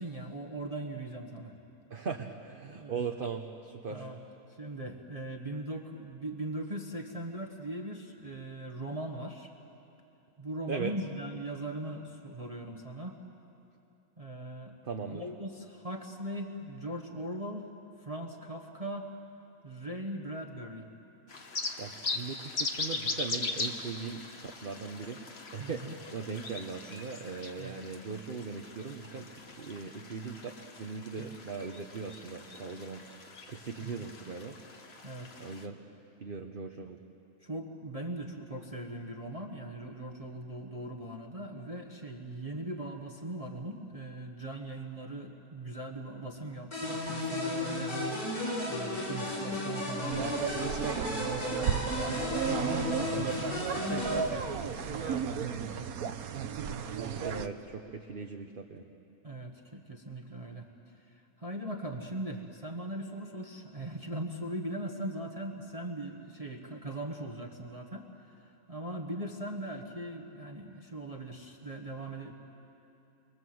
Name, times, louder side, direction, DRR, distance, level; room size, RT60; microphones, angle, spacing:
voice 1, 0.0-1.5 2.7-3.0 3.9-4.2 4.6-9.5 10.4-13.2 14.2-14.8 15.0-17.7 18.0-19.1 19.6-20.9 25.6-25.9 27.6-27.8 31.2-31.3 33.8-34.1 35.0-35.4 37.4-50.6 51.2-55.9 56.6-57.3 59.2-72.3, right 1 dB, 25° right, 2 dB, 1.3 m, -40 dB
voice 2, 1.9-4.1 10.7-10.9 14.8-15.2 21.8-25.2 25.5-29.3 29.6-33.0 33.5-34.5 35.4-35.8 36.2-37.0 57.0-58.8, right 5 dB, 40° right, 3 dB, 1.0 m, -39 dB
sound 1, 21.3-35.7, left 3 dB, 40° left, 1.6 m, -40 dB
sound 2, 46.7-54.2, left 2 dB, 65° left, 6.0 m, -34 dB
sound 3, 50.1-57.5, right 7 dB, 70° right, 1.3 m, -34 dB
27.0 x 24.0 x 7.9 m, 2.9 s
omnidirectional pair, 1.7 m